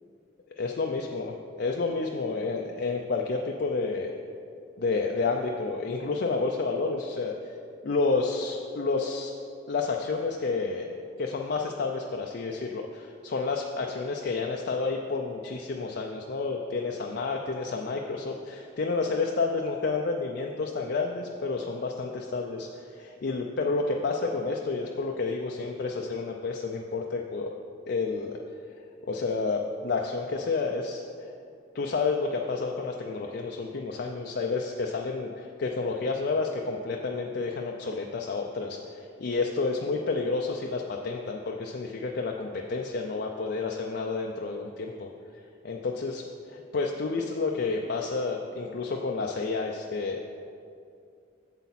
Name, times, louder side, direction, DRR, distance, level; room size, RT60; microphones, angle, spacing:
voice 1, 0.6-4.1 4.8-7.3 7.8-9.3 9.7-10.9 11.2-27.5 27.9-28.4 29.0-31.0 31.7-45.1 45.6-46.2 46.5-50.2, left 4 dB, 55° left, 1 dB, 0.5 m, -30 dB
8.0 x 7.1 x 4.2 m, 2.4 s
head